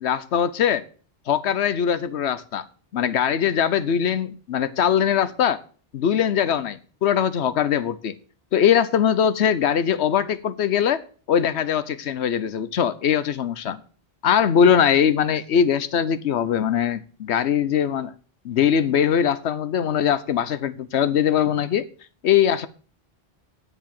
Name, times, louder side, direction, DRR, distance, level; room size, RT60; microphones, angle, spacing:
voice 1, 0.0-0.8 1.3-2.6 2.9-5.6 5.9-8.1 8.5-13.8 14.2-18.1 18.4-21.9 22.2-22.7, left 8 dB, 85° left, 1.1 m, -21 dB
9.8 x 6.7 x 6.6 m
omnidirectional pair, 1.1 m